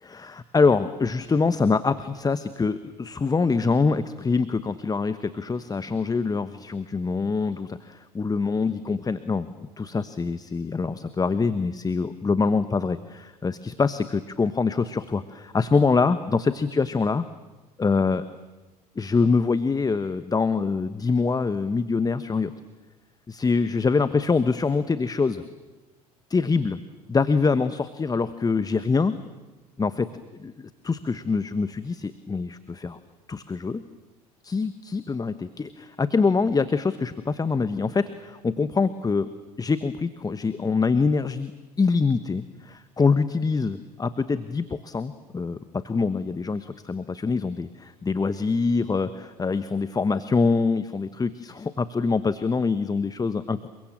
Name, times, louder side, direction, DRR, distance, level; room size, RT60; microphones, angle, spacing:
voice 1, 0.0-9.5 9.8-17.2 17.8-18.2 19.0-22.5 23.3-25.4 26.3-26.8 27.1-29.2 29.8-30.1 30.4-33.0 33.3-33.8 34.4-39.3 39.6-41.5 41.8-42.4 43.0-53.7, left 4 dB, 20° left, 13 dB, 1.1 m, -24 dB
29.5 x 23.0 x 7.5 m, 1.1 s
hypercardioid pair, 70°, 19 cm